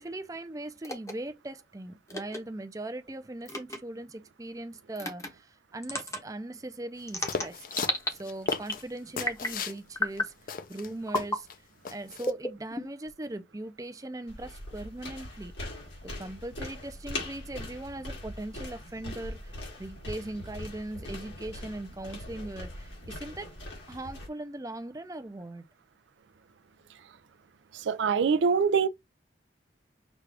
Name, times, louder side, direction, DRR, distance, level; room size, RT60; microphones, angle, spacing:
voice 1, 0.0-7.6 8.1-10.3 10.7-11.5 11.9-15.5 16.0-23.5 23.9-25.6, right 1 dB, 20° right, 0.5 m, -40 dB
sound 1, 0.8-1.1 2.1-2.4 3.5-3.8 5.0-5.3 5.8-6.2 7.1-8.1 8.5-8.8 9.2-9.6 10.0-10.3 11.1-11.4 12.2-13.1, left 1 dB, 15° left, 0.8 m, -32 dB
sound 2, 7.3-9.8 10.2-10.3 10.5-11.5 11.8-12.3, left 5 dB, 50° left, 0.5 m, -35 dB
sound 3, 14.3-24.3, left 1 dB, 90° left, 2.3 m, -41 dB
voice 2, 27.7-28.9, right 6 dB, 80° right, 0.4 m, -24 dB
6.1 x 2.3 x 3.3 m
head